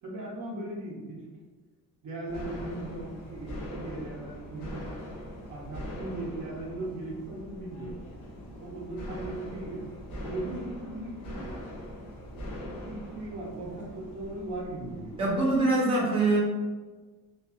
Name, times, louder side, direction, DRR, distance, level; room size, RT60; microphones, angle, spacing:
voice 1, 0.0-1.3 2.0-4.9 5.5-8.0 8.6-9.9 10.2-11.6 12.7-15.2, right 2 dB, 55° right, -4 dB, 0.7 m, -38 dB
sound 1, 2.3-15.7, equal, 70° left, 0.8 m, -42 dB
voice 2, 15.2-16.4, right 2 dB, 15° right, -6 dB, 0.7 m, -24 dB
2.7 x 2.3 x 2.3 m, 1.3 s
cardioid pair, 155°, 35 cm